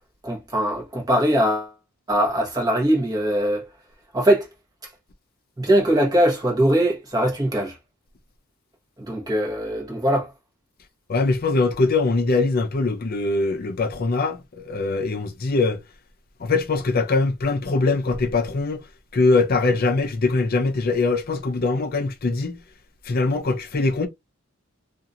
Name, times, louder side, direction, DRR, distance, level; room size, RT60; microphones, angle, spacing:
voice 1, 0.2-1.7 2.1-3.6 4.1-4.5 5.6-7.7 9.0-10.3, right 1 dB, 20° right, 1.1 m, -21 dB
voice 2, 11.1-15.8 16.4-18.8 19.1-22.6 23.1-24.1, left 3 dB, 45° left, 0.5 m, -22 dB
2.8 x 2.5 x 2.5 m
head